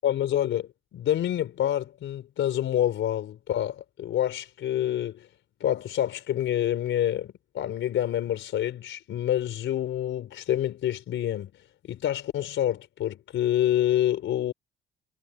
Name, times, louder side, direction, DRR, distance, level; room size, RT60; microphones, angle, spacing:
voice 1, 0.0-5.3 5.6-11.5 11.9-14.5, left 11 dB, 75° left, 4.0 m, -27 dB
cardioid pair, 90°, 20 cm